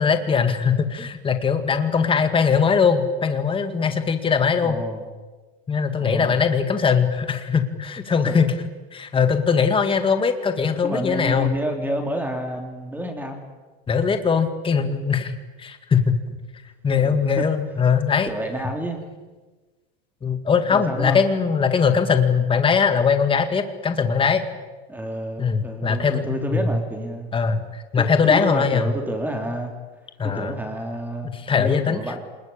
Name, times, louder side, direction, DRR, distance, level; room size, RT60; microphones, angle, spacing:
voice 1, 0.0-4.8 5.7-11.5 13.9-15.3 15.6-16.3 16.8-18.3 20.2-24.4 25.4-26.7 27.3-28.9 30.2-30.5 31.3-32.0, left 6 dB, 15° left, 8 dB, 2.0 m, -21 dB
voice 2, 4.6-5.0 6.0-6.4 8.3-8.4 10.8-13.4 16.9-17.5 18.3-19.0 20.7-21.3 24.9-27.3 28.0-29.7 30.2-32.2, right 1 dB, 5° right, 4 dB, 3.6 m, -29 dB
26.0 x 21.0 x 8.8 m, 1.3 s
supercardioid pair, 135°, 31 cm